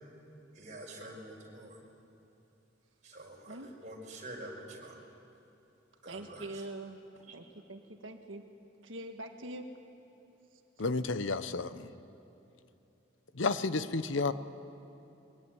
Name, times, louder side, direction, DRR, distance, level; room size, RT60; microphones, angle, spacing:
voice 1, 0.5-1.8 3.0-5.0 6.0-6.6 7.3-7.4, right 1 dB, 40° right, -1 dB, 5.4 m, -47 dB
voice 2, 6.1-7.0 7.3-8.4 8.8-9.7, right 1 dB, 85° right, 4 dB, 1.6 m, -43 dB
voice 3, 10.8-11.9 13.3-14.3, left 3 dB, 75° left, 13 dB, 0.9 m, -31 dB
23.0 x 22.0 x 9.7 m, 2.9 s
head